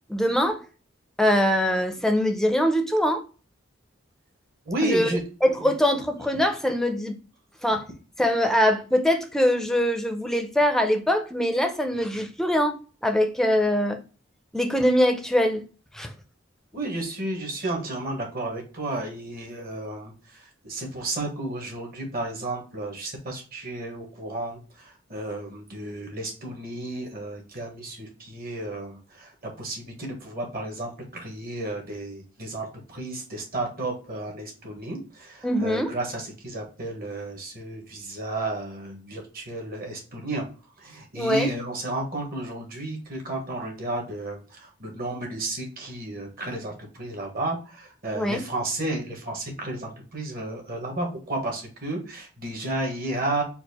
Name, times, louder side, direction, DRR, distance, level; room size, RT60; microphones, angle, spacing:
voice 1, 0.1-0.6 1.2-3.2 4.8-5.1 5.4-7.2 7.6-7.9 8.2-12.8 13.0-14.0 14.5-15.6 15.9-16.1 35.4-35.9 41.1-41.5 48.1-48.4, equal, ahead, 0.5 m, -23 dB
voice 2, 4.6-5.2 5.6-5.7 16.7-29.3 29.6-40.5 40.8-53.4, right 2 dB, 50° right, 1.5 m, -32 dB
4.4 x 2.5 x 4.2 m
head